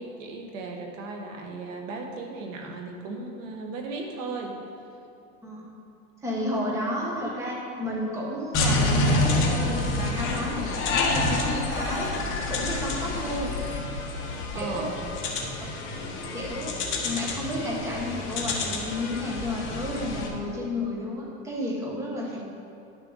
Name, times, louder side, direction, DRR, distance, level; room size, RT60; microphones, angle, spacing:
voice 1, 0.0-4.6 13.4-13.5 14.5-15.0 15.5-15.9 22.2-22.4, right 3 dB, 70° right, 2 dB, 1.6 m, -36 dB
voice 2, 6.2-12.1 12.5-13.5 14.5-14.9 16.3-16.8 17.0-22.4, left 1 dB, 5° right, -4 dB, 1.1 m, -32 dB
sound 1, 8.5-20.3, left 2 dB, 30° left, 1.3 m, -28 dB
11.5 x 6.8 x 3.9 m, 2.7 s
supercardioid pair, 160°, 39 cm